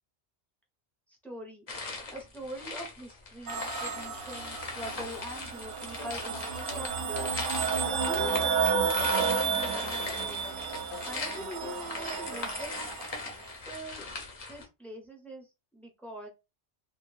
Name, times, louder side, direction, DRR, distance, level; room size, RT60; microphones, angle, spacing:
voice 1, 1.1-1.6 2.1-7.3 7.8-10.4 11.1-12.7 13.6-14.1 14.5-16.3, equal, ahead, 1 dB, 0.5 m, -43 dB
sound 1, 1.7-14.6, left 3 dB, 40° left, 0.6 m, -39 dB
sound 2, 3.5-13.2, right 6 dB, 60° right, 0.7 m, -32 dB
sound 3, 6.0-7.4 7.9-8.8 9.7-11.2 11.6-12.6, left 5 dB, 75° left, 0.9 m, -47 dB
2.2 x 2.1 x 3.1 m, 0.25 s
omnidirectional pair, 1.2 m